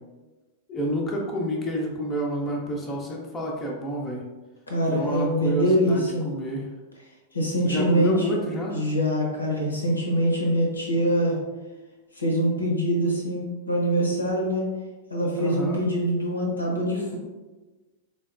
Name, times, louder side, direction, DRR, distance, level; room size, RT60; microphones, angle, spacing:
voice 1, 0.7-4.2 4.9-6.7 7.6-8.8 15.4-15.8, equal, 20° left, -2 dB, 0.6 m, -29 dB
voice 2, 4.7-6.3 7.3-8.3 8.7-11.4 12.2-14.7 15.1-17.2, equal, 80° left, -1 dB, 0.7 m, -24 dB
3.9 x 2.1 x 2.4 m, 1.2 s
figure-of-eight pair, 95°, 0 cm